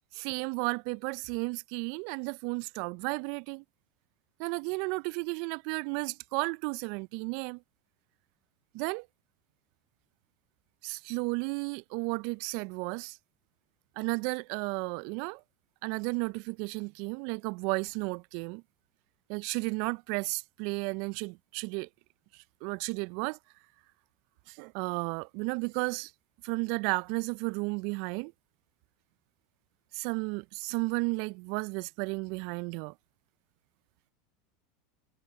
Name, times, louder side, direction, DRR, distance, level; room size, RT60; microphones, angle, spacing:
voice 1, 0.1-3.6 4.4-7.6 8.7-9.1 10.8-13.2 14.0-15.4 15.8-18.6 19.3-21.9 22.3-23.4 24.5-26.1 26.4-28.3 29.9-32.9, right 31 dB, 60° right, 0.3 m, -33 dB
hypercardioid pair, 90°, 0 cm